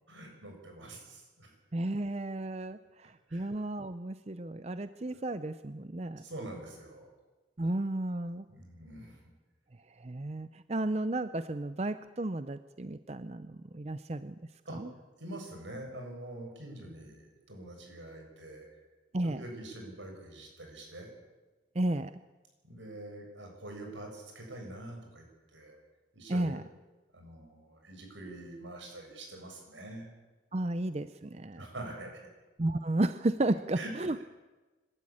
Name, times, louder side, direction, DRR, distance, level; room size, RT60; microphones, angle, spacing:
voice 1, 0.1-1.5 3.3-3.5 6.0-7.1 8.5-9.2 14.7-14.8 15.2-18.7 19.2-21.1 22.7-25.2 25.5-25.8 26.1-26.6 27.1-30.1 31.6-32.2 33.8-33.9, right 1 dB, 85° right, 2 dB, 7.0 m, -45 dB
voice 2, 1.7-6.2 7.6-8.4 10.0-14.4 14.7-14.9 19.1-19.4 21.8-22.1 26.3-26.6 30.5-31.7 32.6-34.2, right 2 dB, 35° right, 12 dB, 0.6 m, -33 dB
25.5 x 13.0 x 8.7 m, 1.2 s
head